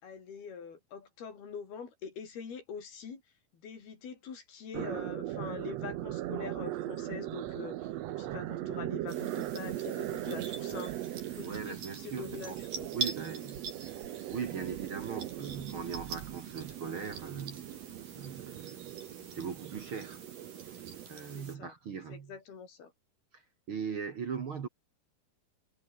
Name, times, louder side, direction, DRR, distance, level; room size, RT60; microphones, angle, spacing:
voice 1, 0.0-3.2 3.5-11.0 11.3-12.9 21.3-21.7 22.1-22.9, left 6 dB, 90° left, 6.5 m, -44 dB
sound 1, 4.7-21.1, right 14 dB, 85° right, 1.4 m, -39 dB
sound 2, 9.1-21.6, right 5 dB, 65° right, 6.9 m, -45 dB
voice 2, 11.4-12.6 12.9-13.9 14.3-17.7 18.1-19.0 19.3-20.2 20.7-20.8 21.1-22.3 23.3-23.4 23.7-24.7, right 6 dB, 45° right, 1.9 m, -40 dB
omnidirectional pair, 4.3 m